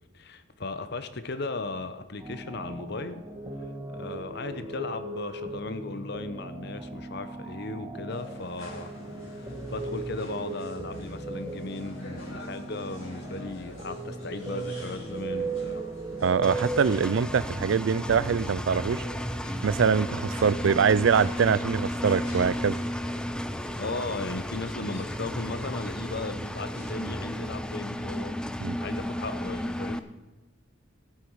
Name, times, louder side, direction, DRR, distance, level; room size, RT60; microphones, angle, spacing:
voice 1, 0.1-3.2 3.6-8.9 9.3-15.8 23.8-28.4 28.8-30.0, left 3 dB, 55° left, 11 dB, 0.9 m, -36 dB
sound 1, 2.2-20.8, right 2 dB, 20° right, 1.2 m, -38 dB
sound 2, 8.1-27.1, left 1 dB, 90° left, 5.0 m, -47 dB
voice 2, 16.2-19.0 19.6-22.8 28.6-28.8, right 6 dB, 70° right, 20 dB, 0.4 m, -24 dB
Engine, 16.4-30.0, equal, 5° left, 0.4 m, -34 dB
14.0 x 8.5 x 4.7 m, 1.2 s
head